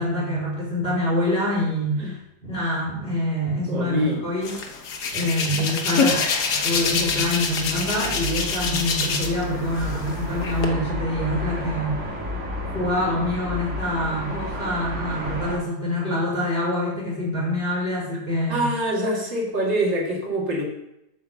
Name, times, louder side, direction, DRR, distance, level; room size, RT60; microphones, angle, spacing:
voice 1, 0.0-2.1 2.4-4.5 5.1-12.0 12.6-18.7, left 1 dB, 25° left, -5 dB, 4.2 m, -25 dB
voice 2, 3.7-4.2 18.5-20.6, right 1 dB, 65° right, -2 dB, 2.7 m, -25 dB
Hands, 4.4-9.4 9.8-10.7, left 5 dB, 60° left, 1.6 m, -25 dB
sound 1, 6.6-15.6, left 1 dB, 35° right, 2.0 m, -32 dB
8.5 x 5.6 x 6.9 m, 0.85 s
omnidirectional pair, 2.2 m